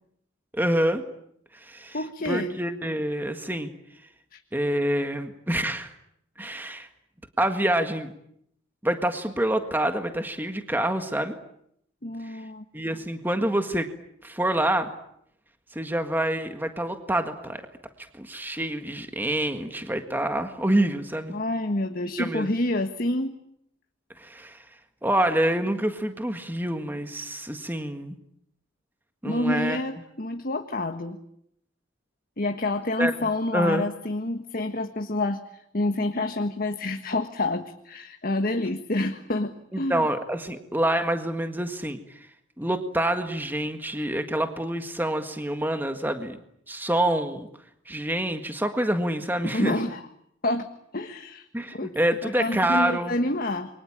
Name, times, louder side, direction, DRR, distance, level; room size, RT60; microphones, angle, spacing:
voice 1, 0.5-1.0 1.5-2.0 2.2-3.7 4.5-5.9 6.4-6.9 7.4-8.1 8.8-11.4 12.2-12.4 12.7-13.9 14.2-14.9 15.7-17.6 18.1-21.4 22.2-22.5 24.2-24.6 25.0-28.2 29.2-29.8 33.0-33.9 39.7-42.3 42.6-46.4 46.7-47.5 47.8-49.8 51.5-53.2, right 1 dB, 10° right, 7 dB, 1.7 m, -27 dB
voice 2, 1.9-2.5 4.3-4.4 12.0-12.6 21.3-23.4 29.2-31.2 32.4-40.1 49.4-50.1 50.4-50.7 50.9-51.5 51.7-51.9 52.2-53.7, left 2 dB, 45° left, 6 dB, 1.6 m, -28 dB
28.5 x 23.5 x 8.9 m, 0.73 s
head